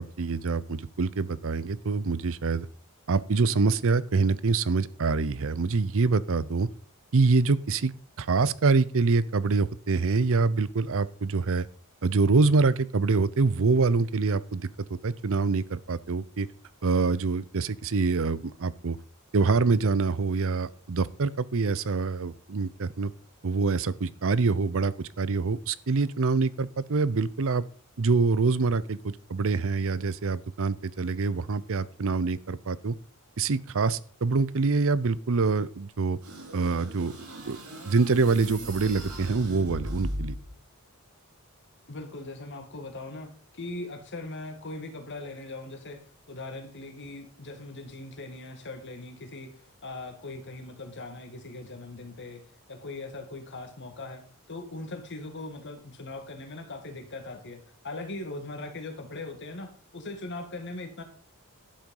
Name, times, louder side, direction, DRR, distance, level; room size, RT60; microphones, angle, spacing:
voice 1, 0.0-2.7 3.1-6.7 7.1-7.9 8.2-11.7 12.0-16.5 16.8-19.0 19.3-23.1 23.4-27.6 28.0-32.9 33.4-36.2 36.5-37.2 37.4-37.6 37.8-40.3, right 4 dB, 65° right, 18 dB, 0.6 m, -25 dB
sound 1, 36.2-40.6, equal, 85° right, 5.3 m, -38 dB
voice 2, 41.9-46.0 46.3-52.4 52.7-54.2 54.5-61.0, left 2 dB, 55° left, 6 dB, 2.2 m, -40 dB
11.5 x 7.7 x 5.4 m, 0.42 s
head